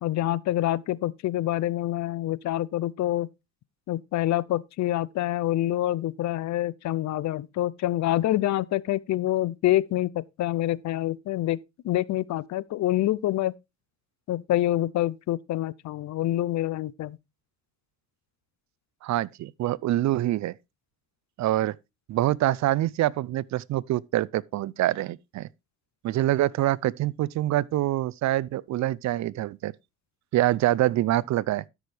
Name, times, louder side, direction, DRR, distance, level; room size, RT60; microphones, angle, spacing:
voice 1, 0.0-3.3 3.9-13.5 14.3-17.2, left 14 dB, 65° left, 0.5 m, -26 dB
voice 2, 19.0-20.5 21.4-21.7 22.1-25.5 26.0-29.7 30.3-31.6, right 14 dB, 65° right, 0.5 m, -25 dB
12.5 x 6.2 x 3.3 m
cardioid pair, 90°, 30 cm